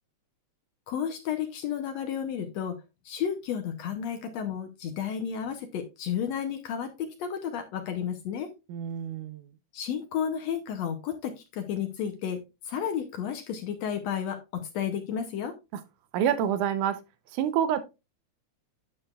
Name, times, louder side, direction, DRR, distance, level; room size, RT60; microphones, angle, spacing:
voice 1, 0.9-2.8 3.1-8.5 9.7-15.5, left 8 dB, 70° left, 1.9 m, -32 dB
voice 2, 8.7-9.5 16.1-17.0 17.3-17.8, right 9 dB, 85° right, 2.3 m, -27 dB
9.6 x 6.9 x 2.3 m
omnidirectional pair, 3.4 m